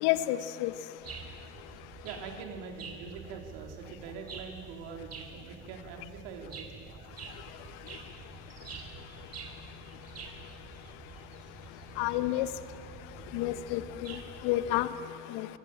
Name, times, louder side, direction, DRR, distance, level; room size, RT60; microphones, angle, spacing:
voice 1, 0.0-0.7 12.0-12.5 13.3-13.8 14.4-14.9 15.3-15.5, left 16 dB, 55° left, 1.2 m, -28 dB
sound 1, 1.0-14.9, right 5 dB, 30° right, 3.3 m, -47 dB
voice 2, 2.0-6.9, right 5 dB, 60° right, 3.8 m, -43 dB
25.0 x 15.5 x 8.8 m
hypercardioid pair, 75°, 47 cm